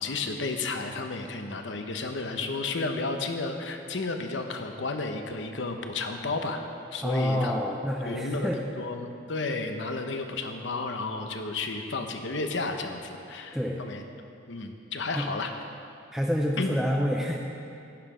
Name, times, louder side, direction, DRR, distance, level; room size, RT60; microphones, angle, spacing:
voice 1, 0.0-6.6 6.9-7.5 8.0-8.5 8.8-14.0 14.5-15.5 16.6-16.7, left 3 dB, 70° left, 5 dB, 0.9 m, -32 dB
voice 2, 7.0-8.6 13.5-13.8 15.1-15.3 16.1-17.4, equal, ahead, -1 dB, 0.5 m, -27 dB
11.5 x 9.1 x 5.0 m, 2.6 s
head